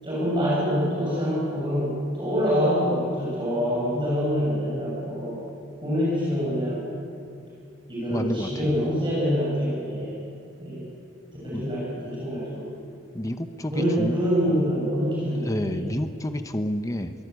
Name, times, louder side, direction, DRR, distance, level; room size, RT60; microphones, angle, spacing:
voice 1, 0.0-5.4 5.8-6.8 7.9-10.1 10.6-10.8 11.4-12.7 13.7-15.8, equal, 25° right, -8 dB, 7.6 m, -25 dB
voice 2, 8.1-8.7 11.5-11.7 13.1-14.2 15.4-17.1, left 1 dB, 15° left, 8 dB, 0.8 m, -29 dB
23.5 x 18.0 x 8.3 m, 2.4 s
head